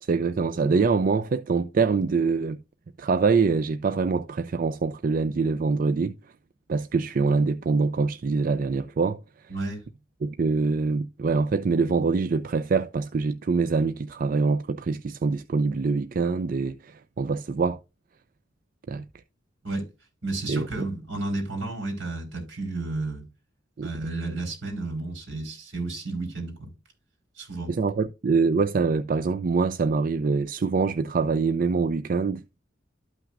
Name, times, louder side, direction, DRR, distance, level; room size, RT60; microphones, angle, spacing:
voice 1, 0.0-2.6 3.0-6.2 6.7-9.5 10.2-17.8 18.9-19.0 20.5-20.9 23.8-23.9 27.7-32.4, right 4 dB, 45° right, 0.4 m, -24 dB
voice 2, 9.5-9.8 19.6-19.9 20.2-23.2 23.8-26.7 27.4-27.7, right 2 dB, 75° right, 4.2 m, -32 dB
12.5 x 5.8 x 2.5 m
head